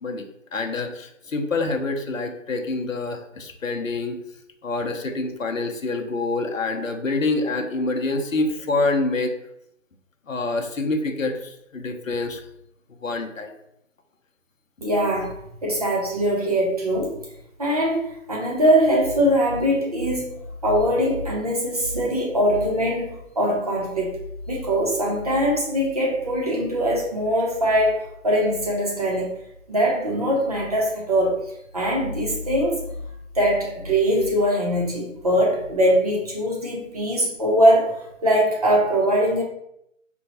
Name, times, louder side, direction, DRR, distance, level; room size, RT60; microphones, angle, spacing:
voice 1, 0.5-4.2 4.6-9.3 10.3-12.4 13.0-13.6, left 3 dB, 75° left, 5 dB, 0.7 m, -26 dB
voice 2, 14.8-15.3 15.6-17.1 17.6-20.4 20.6-24.1 24.5-29.3 29.7-31.4 31.7-32.8 33.3-39.4, equal, 30° right, -3 dB, 0.8 m, -22 dB
4.4 x 2.3 x 2.8 m, 0.78 s
figure-of-eight pair, 150°, 39 cm